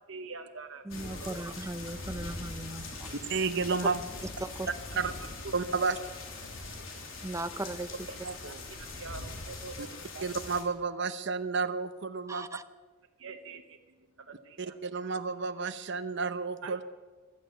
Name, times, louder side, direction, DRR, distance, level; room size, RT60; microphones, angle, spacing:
voice 1, 0.1-1.3 5.0-5.1 5.4-5.9 6.7-6.8 8.5-10.3 13.2-14.8 16.6-16.8, right 4 dB, 85° right, 4 dB, 1.1 m, -45 dB
voice 2, 0.8-3.2 4.4-4.7 7.2-7.9 12.3-12.6, right 2 dB, 15° right, 10 dB, 0.7 m, -38 dB
sound 1, 0.9-10.6, left 3 dB, 85° left, 3.2 m, -42 dB
voice 3, 3.3-4.0 5.0-5.1 5.5-6.0 8.2-8.6 9.8-9.9 10.2-12.5 14.6-16.8, right 4 dB, 60° right, 10 dB, 0.9 m, -31 dB
15.0 x 12.0 x 8.0 m, 1.3 s
head